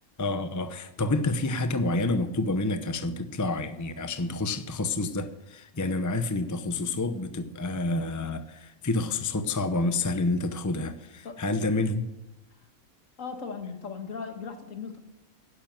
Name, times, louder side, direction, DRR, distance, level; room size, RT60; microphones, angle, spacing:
voice 1, 0.2-12.1, left 2 dB, 15° left, 9 dB, 0.6 m, -28 dB
voice 2, 13.2-15.0, left 5 dB, 60° left, 6 dB, 2.0 m, -37 dB
12.0 x 11.0 x 9.2 m, 0.97 s
omnidirectional pair, 1.6 m